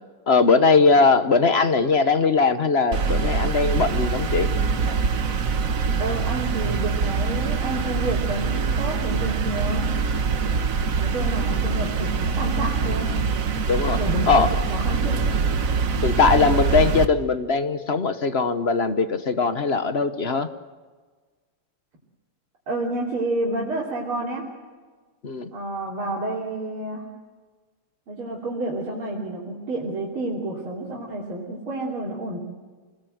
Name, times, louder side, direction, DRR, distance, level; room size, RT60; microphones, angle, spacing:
voice 1, 0.3-4.5 13.7-14.0 14.3-14.5 16.0-20.5 25.2-25.5, left 4 dB, 40° left, 10 dB, 1.0 m, -20 dB
sound 1, 2.9-17.1, right 5 dB, 45° right, 1.4 m, -24 dB
voice 2, 5.9-10.0 11.0-13.1 13.9-14.3 14.7-15.3 22.7-24.4 25.5-27.1 28.1-32.4, right 2 dB, 75° right, -5 dB, 4.3 m, -30 dB
27.5 x 20.0 x 7.9 m, 1.4 s
omnidirectional pair, 2.3 m